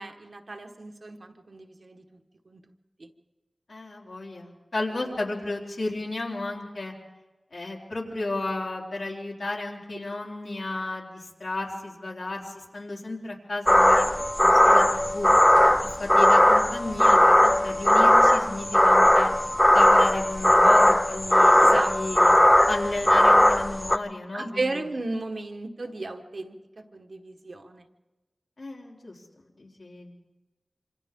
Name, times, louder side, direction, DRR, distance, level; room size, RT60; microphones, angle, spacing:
voice 1, 0.0-2.2 2.5-2.6 3.0-3.1 4.9-5.2 15.6-15.7 21.6-21.9 24.3-27.9, right 2 dB, 60° right, 5 dB, 1.4 m, -35 dB
voice 2, 3.7-6.9 7.5-15.3 15.8-19.3 19.7-22.3 22.7-24.7 28.6-29.2 29.6-30.1, left 2 dB, 75° left, -2 dB, 4.0 m, -33 dB
sound 1, 13.7-24.0, left 1 dB, 15° left, 0.6 m, -18 dB
27.5 x 26.0 x 3.7 m, 1.2 s
wide cardioid pair, 80°, 0 cm